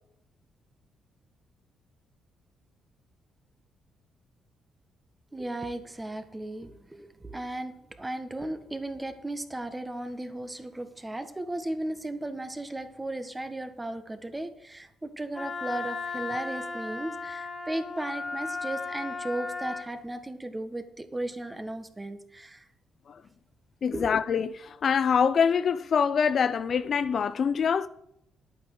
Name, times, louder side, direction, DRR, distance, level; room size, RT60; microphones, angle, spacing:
voice 1, 5.3-22.6 23.9-24.1, right 1 dB, 15° right, 1.5 m, -36 dB
Wind instrument woodwind instrument, 15.4-19.9, left 4 dB, 30° left, 1.5 m, -35 dB
voice 2, 23.8-27.9, left 6 dB, 50° left, 0.6 m, -25 dB
11.0 x 8.9 x 6.6 m
cardioid pair, 90°, 0 cm